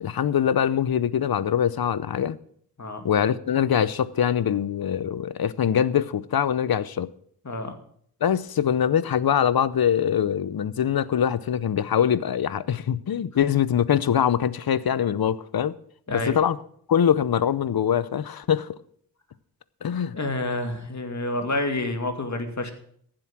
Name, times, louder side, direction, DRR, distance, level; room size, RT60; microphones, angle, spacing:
voice 1, 0.0-2.4 3.0-7.1 8.2-15.7 16.1-16.6 16.9-18.8 19.8-20.2, left 9 dB, 65° left, 0.8 m, -23 dB
voice 2, 20.1-22.7, left 2 dB, 45° left, 2.4 m, -28 dB
15.0 x 7.7 x 6.0 m
cardioid pair, 65°, 40 cm